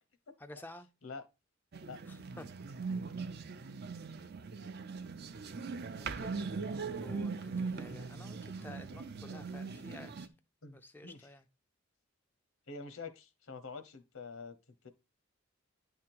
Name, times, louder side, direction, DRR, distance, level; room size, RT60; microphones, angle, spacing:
voice 1, 0.4-0.9 2.1-2.5 6.0-10.3 10.7-11.4, left 1 dB, 10° left, 0.4 m, -52 dB
sound 1, 1.7-10.3, right 4 dB, 50° right, 0.6 m, -40 dB
voice 2, 10.6-11.3 12.7-14.6 14.8-14.9, left 4 dB, 80° left, 1.0 m, -46 dB
9.4 x 3.6 x 4.5 m
head